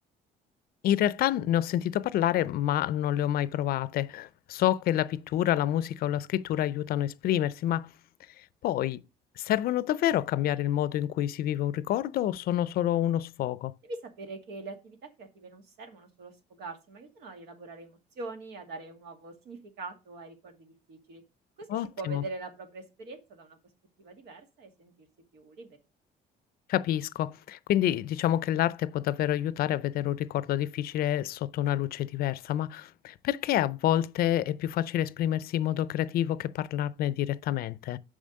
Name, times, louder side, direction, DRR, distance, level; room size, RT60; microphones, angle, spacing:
voice 1, 0.8-7.9 8.6-9.0 9.4-13.7 21.7-22.2 26.7-38.0, left 12 dB, 65° left, 0.5 m, -28 dB
voice 2, 13.8-21.2 21.6-23.6 24.0-24.9 25.3-25.8, right 3 dB, 85° right, 2.1 m, -43 dB
7.4 x 5.0 x 5.2 m
cardioid pair, 110°, 17 cm